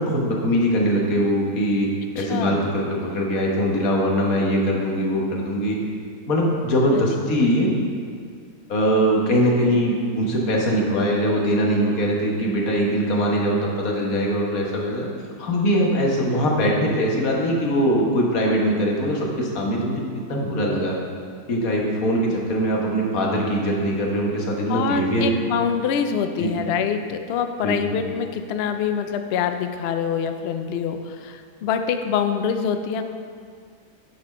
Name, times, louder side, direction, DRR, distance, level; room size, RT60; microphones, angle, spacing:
voice 1, 0.0-1.9 2.1-5.8 6.3-7.8 8.7-15.1 15.4-20.0 20.3-21.0 21.5-25.4 26.4-26.5 27.6-28.0, equal, 65° left, -1 dB, 1.6 m, -22 dB
voice 2, 2.2-2.6 6.9-7.0 24.7-33.0, left 7 dB, 90° left, 7 dB, 0.5 m, -25 dB
9.6 x 4.2 x 5.4 m, 2.1 s
omnidirectional pair, 1.6 m